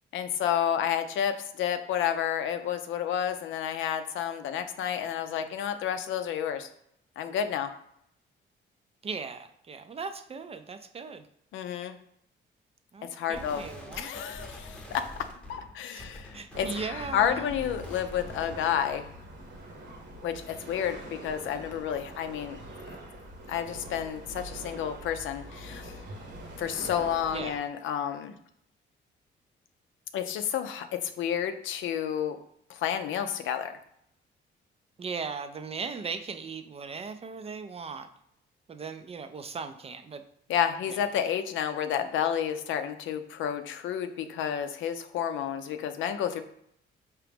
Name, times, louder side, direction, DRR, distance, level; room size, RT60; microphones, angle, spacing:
voice 1, 0.1-6.7 7.2-7.7 11.5-12.0 13.1-13.6 13.9-15.0 15.5-19.0 20.2-22.6 23.5-26.0 26.6-28.3 30.1-32.4 32.7-33.8 40.5-46.4, left 9 dB, 75° left, 9 dB, 0.5 m, -30 dB
voice 2, 9.0-11.2 12.9-14.1 15.9-16.1 16.3-17.5 20.9-21.0 27.3-27.6 35.0-38.1 38.7-40.2 40.9-41.0, right 5 dB, 30° right, 9 dB, 0.4 m, -38 dB
sound 1, 13.3-18.8, equal, 5° left, 0.8 m, -45 dB
sound 2, 16.5-27.6, right 1 dB, 65° right, 1.2 m, -44 dB
4.7 x 2.9 x 3.5 m, 0.72 s
cardioid pair, 90°, 20 cm